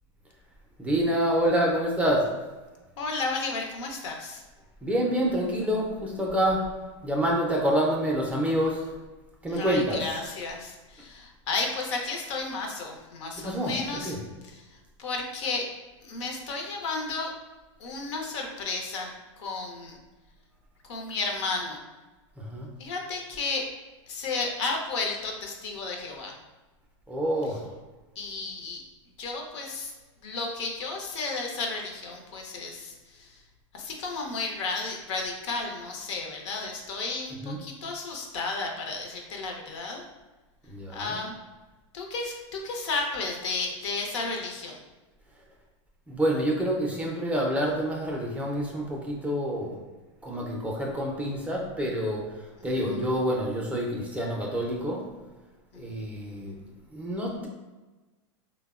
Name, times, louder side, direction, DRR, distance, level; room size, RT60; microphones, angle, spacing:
voice 1, 0.8-2.3 4.8-6.7 7.0-8.9 9.4-10.2 13.4-14.2 22.4-22.7 27.1-27.7 37.3-37.6 40.7-41.2 45.4-45.5 46.1-49.8 50.2-55.1 55.7-56.6 56.9-57.5, equal, 10° right, -2 dB, 0.4 m, -27 dB
voice 2, 3.0-4.4 9.5-14.1 14.5-15.7 16.0-17.3 17.8-20.0 20.9-21.8 22.8-23.7 24.1-26.4 28.2-28.8 29.2-29.9 30.2-33.4 33.7-40.0 40.9-41.3 41.9-44.8 52.7-53.1 55.7-56.0, left 3 dB, 70° left, 2 dB, 0.6 m, -33 dB
3.3 x 2.0 x 2.3 m, 1.2 s
hypercardioid pair, 120°, 16 cm